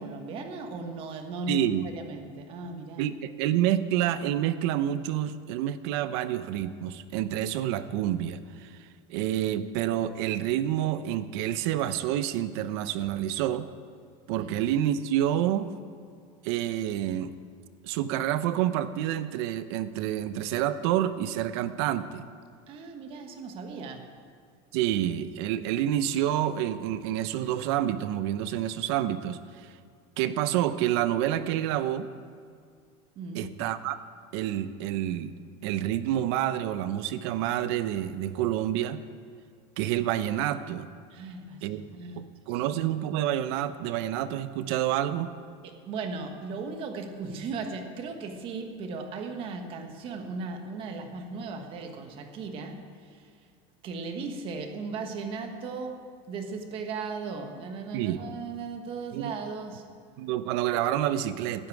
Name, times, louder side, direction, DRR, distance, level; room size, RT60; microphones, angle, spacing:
voice 1, 0.0-3.1 14.4-14.5 22.7-24.1 33.1-33.5 41.1-42.8 45.6-53.4 53.8-59.8, right 4 dB, 35° right, 5 dB, 1.4 m, -37 dB
voice 2, 1.5-1.9 3.0-8.7 9.1-13.7 14.3-15.7 16.4-17.3 17.8-22.2 24.7-29.7 30.2-32.1 33.3-34.0 34.3-35.3 35.6-39.0 39.8-40.9 41.6-41.8 42.2-45.3 57.9-58.2 59.1-59.3 60.2-61.7, right 12 dB, 60° right, 13 dB, 0.7 m, -28 dB
17.5 x 12.5 x 4.8 m, 2.1 s
cardioid pair, 170°, 16 cm